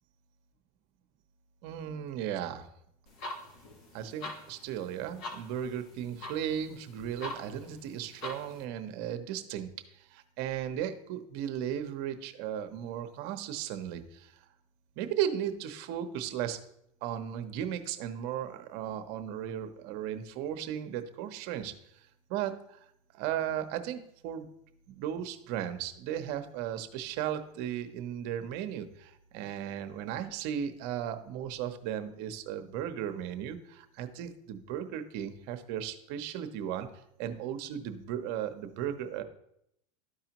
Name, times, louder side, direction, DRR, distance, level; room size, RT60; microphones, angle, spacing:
voice 1, 1.6-2.7 3.9-14.3 15.0-16.6 17.0-21.7 22.3-22.8 23.1-24.5 24.9-36.9 37.2-39.2, right 10 dB, 60° right, 8 dB, 0.9 m, -36 dB
sound 1, 3.1-8.6, left 2 dB, 60° left, 1.4 m, -45 dB
12.5 x 4.8 x 3.0 m, 0.76 s
supercardioid pair, 125°, 19 cm